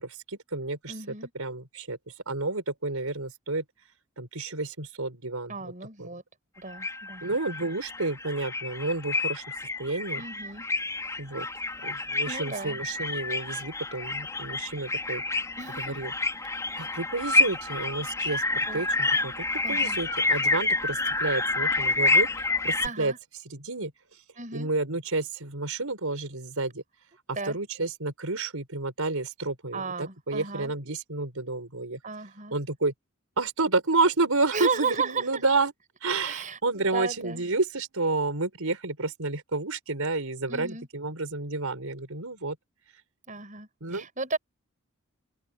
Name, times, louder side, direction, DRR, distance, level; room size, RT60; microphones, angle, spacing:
voice 1, 0.0-0.9 1.3-2.0 2.3-3.6 4.2-5.5 6.0-6.1 7.2-9.4 9.8-10.2 11.2-11.5 11.8-15.2 15.8-16.1 16.8-22.3 22.6-23.1 23.5-23.9 24.5-26.8 27.5-32.0 32.5-32.9 33.4-35.7 36.0-42.6 43.8-44.1, right 3 dB, 90° right, 4.7 m, -30 dB
voice 2, 0.9-1.3 5.5-6.2 6.6-7.2 10.2-10.7 12.3-12.8 15.6-16.0 18.7-18.8 19.6-20.0 22.8-23.2 24.4-24.7 27.3-27.6 29.7-30.7 32.0-32.6 34.5-35.4 36.2-37.4 40.5-40.9 43.3-44.4, right 4 dB, 35° right, 7.1 m, -34 dB
sound 1, 6.7-22.9, left 3 dB, 15° left, 4.4 m, -28 dB
open air
head